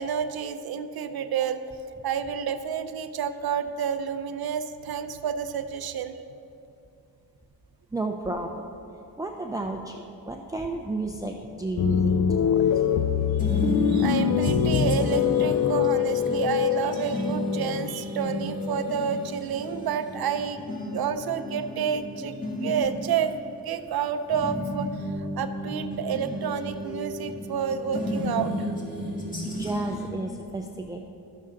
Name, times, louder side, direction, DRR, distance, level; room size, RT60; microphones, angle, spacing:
voice 1, 0.0-1.6 2.0-6.1 13.5-22.3 22.6-28.7, right 7 dB, 65° right, 10 dB, 0.5 m, -30 dB
voice 2, 7.9-8.7 9.2-12.6 29.5-31.0, right 2 dB, 10° right, 2 dB, 0.5 m, -32 dB
sound 1, 11.8-19.3, left 8 dB, 50° left, 0.4 m, -24 dB
sound 2, 12.5-30.1, equal, 20° left, 1.9 m, -33 dB
12.5 x 7.0 x 3.7 m, 2.6 s
cardioid pair, 95°, 40 cm